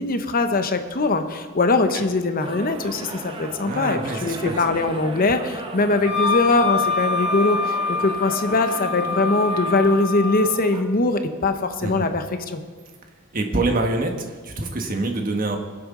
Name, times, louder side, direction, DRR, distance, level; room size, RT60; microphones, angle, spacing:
voice 1, 0.0-12.6, left 2 dB, 45° left, 8 dB, 0.9 m, -22 dB
sound 1, 2.4-10.8, right 2 dB, 25° right, 1.0 m, -36 dB
voice 2, 3.6-4.8 11.8-12.1 13.3-14.1 14.4-15.6, right 2 dB, 45° right, 3 dB, 1.5 m, -25 dB
Wind instrument woodwind instrument, 6.0-10.5, left 5 dB, 70° right, 3.7 m, -25 dB
21.0 x 7.9 x 3.8 m, 1.5 s
head